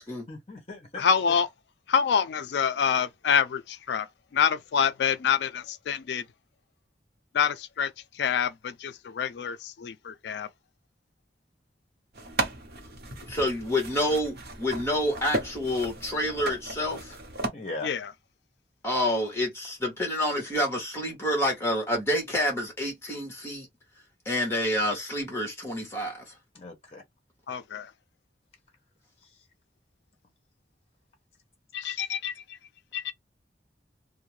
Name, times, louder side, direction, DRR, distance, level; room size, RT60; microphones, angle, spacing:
voice 1, 0.3-1.0 17.5-17.9 26.5-27.0 29.2-29.5 31.9-32.1, left 2 dB, 35° left, 0.8 m, -39 dB
voice 2, 1.0-1.5 1.9-6.3 7.3-10.5 17.8-18.1 27.5-27.9 31.7-32.6 32.9-33.1, left 7 dB, 80° left, 0.3 m, -27 dB
sound 1, 12.1-17.5, right 2 dB, 60° right, 0.7 m, -35 dB
voice 3, 13.3-17.2 18.8-23.7 24.2-26.4, left 1 dB, 15° left, 1.1 m, -28 dB
2.5 x 2.1 x 3.1 m
head